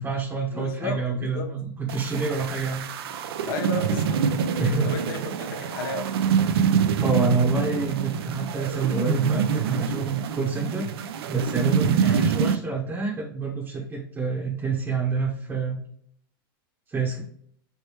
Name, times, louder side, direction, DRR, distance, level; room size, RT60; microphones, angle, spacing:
voice 1, 0.0-2.8 4.6-4.9 7.0-10.9 11.3-15.8 16.9-17.2, right 4 dB, 15° right, -4 dB, 0.9 m, -27 dB
voice 2, 0.5-1.5 3.4-4.3 4.6-6.1 12.1-12.2, left 4 dB, 60° left, 5 dB, 0.9 m, -34 dB
sound 1, 1.9-12.6, right 7 dB, 80° right, 0.5 m, -26 dB
4.3 x 3.4 x 2.9 m, 0.62 s
supercardioid pair, 155°, 13 cm